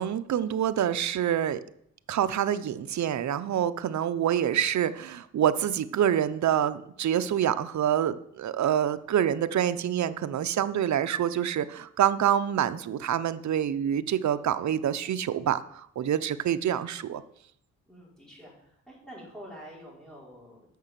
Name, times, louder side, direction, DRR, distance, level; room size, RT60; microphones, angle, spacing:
voice 1, 0.0-1.6 2.1-17.2, right 10 dB, 65° right, 11 dB, 0.8 m, -26 dB
voice 2, 17.9-20.7, equal, ahead, -5 dB, 5.5 m, -47 dB
9.4 x 6.7 x 7.4 m, 0.73 s
cardioid pair, 100°, 30 cm